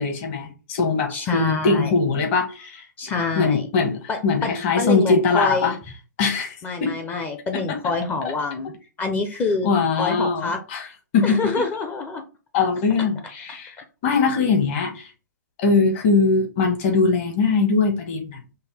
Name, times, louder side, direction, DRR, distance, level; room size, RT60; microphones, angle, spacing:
voice 1, 0.0-2.8 3.3-5.7 6.2-7.0 7.5-7.8 8.2-8.3 9.6-10.9 11.1-11.6 12.5-13.8 14.0-15.1 15.6-18.4, left 4 dB, 40° left, 1.3 m, -21 dB
voice 2, 1.1-1.9 3.0-3.7 4.1-5.8 6.6-8.7 9.0-9.7 10.0-10.6 11.2-12.2, left 4 dB, 15° left, 0.6 m, -26 dB
5.4 x 2.2 x 3.3 m
hypercardioid pair, 135°, 10 cm